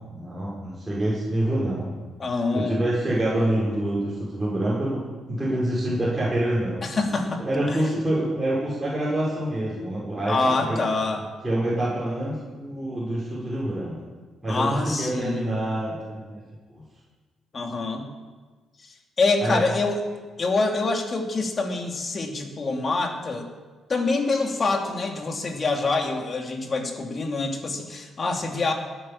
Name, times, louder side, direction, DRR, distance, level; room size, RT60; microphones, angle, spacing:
voice 1, 0.1-2.0 2.5-5.0 5.3-6.8 7.4-10.8 11.4-14.0 14.4-16.4 19.4-19.6, right 1 dB, 10° right, -8 dB, 5.9 m, -26 dB
voice 2, 2.2-2.8 6.8-7.8 10.3-11.3 14.5-15.6 17.5-18.1 18.8-20.0 20.4-23.5 23.9-28.7, left 3 dB, 40° left, 3 dB, 2.8 m, -26 dB
20.0 x 8.9 x 7.4 m, 1.4 s
cardioid pair, 90°, 0 cm